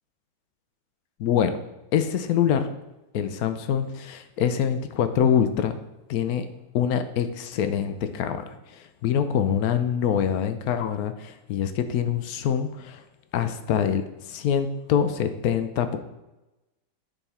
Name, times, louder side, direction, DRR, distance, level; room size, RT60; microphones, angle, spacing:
voice 1, 1.2-1.5 1.9-2.7 3.1-5.7 6.1-6.5 6.7-13.0 13.3-16.0, left 8 dB, 75° left, 9 dB, 0.8 m, -25 dB
10.0 x 3.6 x 4.2 m, 1.0 s
omnidirectional pair, 2.1 m